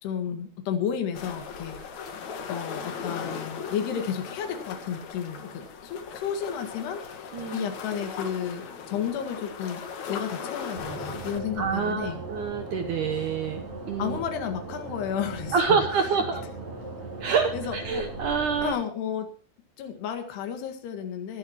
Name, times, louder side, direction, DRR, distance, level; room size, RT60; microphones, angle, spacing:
voice 1, 0.0-1.8 2.5-7.0 7.5-12.2 14.0-15.8 17.5-18.1 18.6-19.3 19.8-21.4, left 8 dB, 70° left, 5 dB, 3.8 m, -32 dB
sound 1, 1.1-11.4, left 6 dB, 55° left, 2.4 m, -38 dB
voice 2, 7.3-8.0 11.6-14.2 15.5-16.5 17.2-18.7, right 6 dB, 75° right, 7 dB, 1.9 m, -27 dB
sound 2, 10.7-18.7, right 3 dB, 35° right, 6.6 m, -38 dB
22.5 x 11.5 x 3.0 m, 0.42 s
omnidirectional pair, 5.0 m